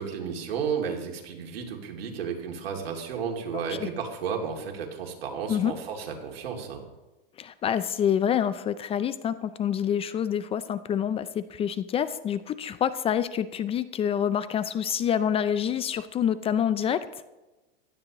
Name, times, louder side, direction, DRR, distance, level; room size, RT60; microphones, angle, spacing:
voice 1, 0.0-6.8, right 6 dB, 85° right, 1 dB, 2.7 m, -33 dB
voice 2, 3.5-3.9 5.5-5.7 7.4-17.0, left 9 dB, 20° left, 14 dB, 0.4 m, -27 dB
16.0 x 12.5 x 3.0 m, 1.1 s
hypercardioid pair, 125°, 29 cm